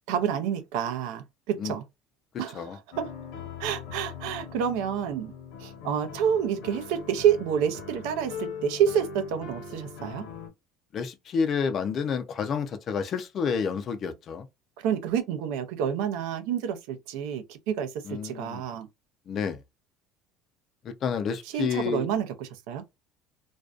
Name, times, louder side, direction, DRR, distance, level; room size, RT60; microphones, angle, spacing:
voice 1, 0.1-1.8 2.4-3.1 3.6-5.3 5.6-10.3 14.8-18.9 21.5-22.9, right 8 dB, 75° right, 0.5 m, -28 dB
sound 1, 2.9-10.5, left 5 dB, 65° left, 0.8 m, -41 dB
voice 2, 10.9-14.5 18.1-18.6 19.3-19.6 20.8-22.0, left 6 dB, 30° left, 0.4 m, -29 dB
2.5 x 2.2 x 2.3 m
cardioid pair, 170°, 0 cm